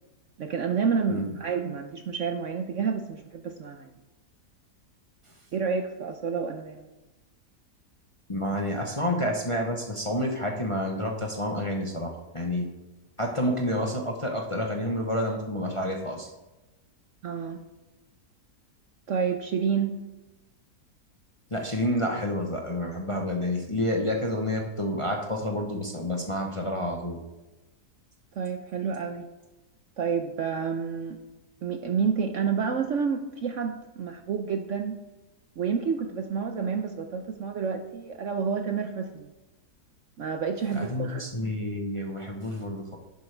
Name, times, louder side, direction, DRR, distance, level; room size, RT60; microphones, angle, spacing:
voice 1, 0.4-3.9 5.5-6.9 17.2-17.6 19.1-19.9 28.4-29.3 30.0-31.2 31.6-35.0 35.6-39.3 40.2-41.2, right 6 dB, 60° right, 5 dB, 0.9 m, -29 dB
voice 2, 8.3-12.7 13.2-16.3 21.5-27.2 40.7-43.0, left 1 dB, 25° left, 1 dB, 0.8 m, -29 dB
11.5 x 8.1 x 3.4 m, 1.1 s
omnidirectional pair, 1.8 m